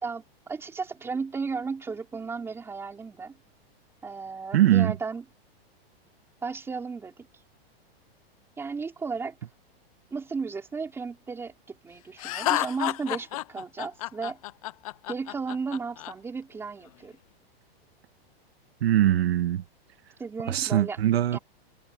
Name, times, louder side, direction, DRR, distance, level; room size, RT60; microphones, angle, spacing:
voice 1, 0.0-3.4 4.0-5.3 6.4-7.3 8.6-9.4 10.1-14.4 15.1-17.2 20.2-21.0 21.3-21.4, right 4 dB, 10° right, 3.9 m, -34 dB
voice 2, 4.5-4.9 18.8-19.6 20.5-21.4, right 12 dB, 75° right, 1.8 m, -22 dB
Laughter, 12.2-16.1, left 17 dB, 35° left, 0.6 m, -30 dB
supercardioid pair, 170°, 31 cm